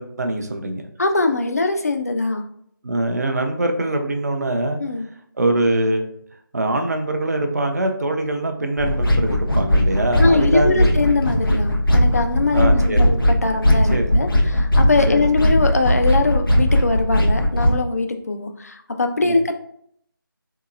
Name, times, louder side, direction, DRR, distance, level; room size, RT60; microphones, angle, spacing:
voice 1, 0.0-0.9 2.8-4.8 5.4-6.1 6.5-11.1 12.5-13.1 13.9-14.0 14.7-14.8 15.1-15.2 19.2-19.4, right 1 dB, 50° right, 4 dB, 0.5 m, -23 dB
voice 2, 1.0-2.4 4.8-5.1 10.2-19.5, left 3 dB, 45° left, 5 dB, 0.4 m, -22 dB
sound 1, 8.8-17.8, equal, 75° left, 0.7 m, -18 dB
3.7 x 2.8 x 2.4 m, 0.66 s
figure-of-eight pair, 165°, 12 cm